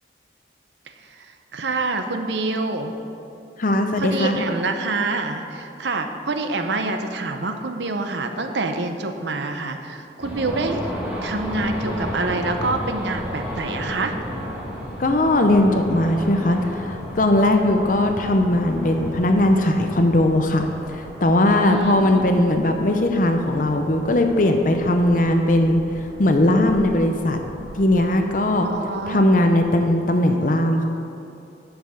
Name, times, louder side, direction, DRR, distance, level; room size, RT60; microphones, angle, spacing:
voice 1, 1.5-2.9 4.0-10.8 11.2-14.1 21.6-22.4 28.6-29.2, right 3 dB, 70° right, 6 dB, 0.7 m, -26 dB
voice 2, 3.6-4.4 15.0-27.4 27.7-28.7 29.1-30.9, left 1 dB, 45° left, 5 dB, 0.6 m, -19 dB
sound 1, 10.2-29.8, equal, 5° right, 1.4 m, -34 dB
7.7 x 6.6 x 7.0 m, 2.7 s
head